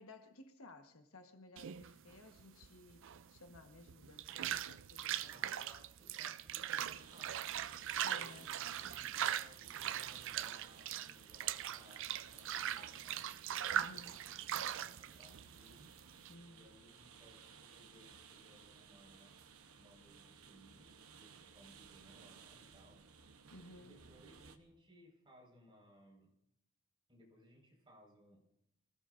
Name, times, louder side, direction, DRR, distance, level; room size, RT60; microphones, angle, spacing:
voice 1, 0.0-5.4 8.0-8.5 13.7-14.1 16.3-16.7 23.5-24.0, left 2 dB, 75° left, 1.4 m, -57 dB
sound 1, 1.6-16.3, right 10 dB, 65° right, 0.5 m, -41 dB
voice 2, 5.2-7.6 8.0-13.2 13.7-14.1 14.6-15.9 16.5-23.0 23.8-26.3 27.1-28.4, equal, 25° right, 5.2 m, -63 dB
sound 2, 6.8-24.6, right 6 dB, 85° right, 1.0 m, -58 dB
25.0 x 16.5 x 2.6 m
head